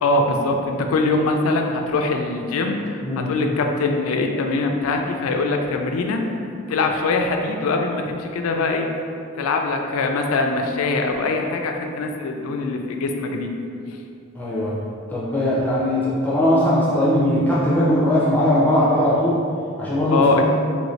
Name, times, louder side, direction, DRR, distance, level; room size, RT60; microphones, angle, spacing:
voice 1, 0.0-3.0 3.3-6.2 6.7-8.9 9.4-13.5 20.1-20.4, left 3 dB, 85° left, 4 dB, 0.3 m, -22 dB
voice 2, 14.3-14.8 15.1-19.4 19.8-20.5, left 1 dB, 10° left, -8 dB, 0.5 m, -19 dB
3.0 x 2.6 x 3.1 m, 2.5 s
head